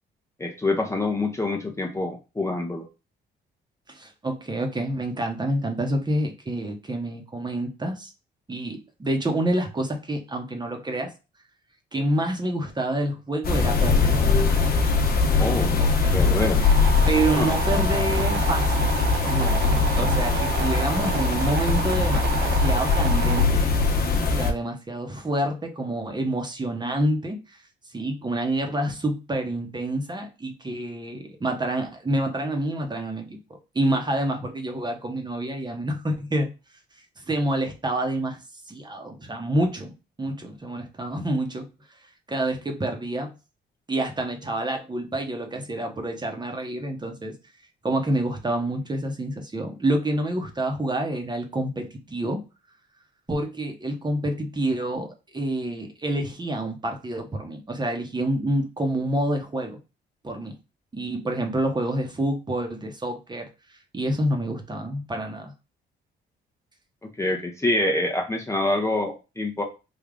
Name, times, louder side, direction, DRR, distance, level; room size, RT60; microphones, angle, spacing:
voice 1, 0.4-2.9 15.4-15.8 16.1-16.7 17.4-17.5 67.0-69.6, left 2 dB, 15° left, 1 dB, 0.7 m, -26 dB
voice 2, 3.9-8.1 8.5-11.1 11.9-14.1 15.8-16.2 17.1-18.9 19.3-22.3 22.6-23.6 24.4-27.6 27.9-36.5 37.2-41.7 42.3-43.3 43.9-47.4 47.8-52.4 53.3-59.8 60.2-60.6 60.9-65.5, right 1 dB, 20° right, 4 dB, 0.9 m, -28 dB
sound 1, 13.4-24.5, left 4 dB, 50° left, 0.9 m, -21 dB
sound 2, 16.6-23.4, right 10 dB, 70° right, 0.4 m, -31 dB
3.4 x 2.3 x 3.7 m, 0.29 s
cardioid pair, 90°, 20 cm